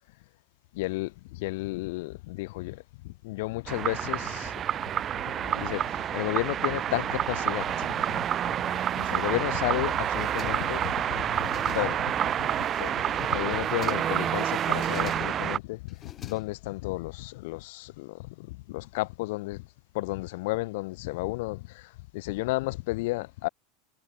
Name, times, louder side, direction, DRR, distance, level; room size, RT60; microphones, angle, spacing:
voice 1, 0.7-4.5 5.5-7.9 8.1-8.2 9.0-12.1 12.4-19.6 19.9-21.7 22.1-23.5, left 22 dB, 65° left, 0.5 m, -32 dB
sound 1, 3.7-15.6, right 10 dB, 30° right, 0.4 m, -28 dB
sound 2, 10.0-10.9 11.2-12.1 12.5-13.1 13.5-14.2 14.6-15.5 15.9-16.9, left 9 dB, 25° left, 5.5 m, -48 dB
supercardioid pair, 150°, 0 cm